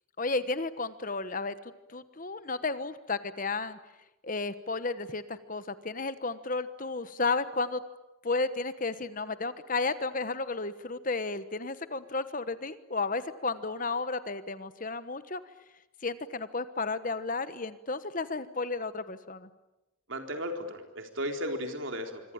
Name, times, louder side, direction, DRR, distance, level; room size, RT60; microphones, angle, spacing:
voice 1, 0.2-1.5 1.9-3.8 4.2-7.8 8.2-15.4 16.0-19.5, left 3 dB, 40° left, 13 dB, 1.2 m, -33 dB
voice 2, 20.1-22.3, equal, 65° right, 4 dB, 3.9 m, -35 dB
25.5 x 25.5 x 8.9 m, 0.96 s
head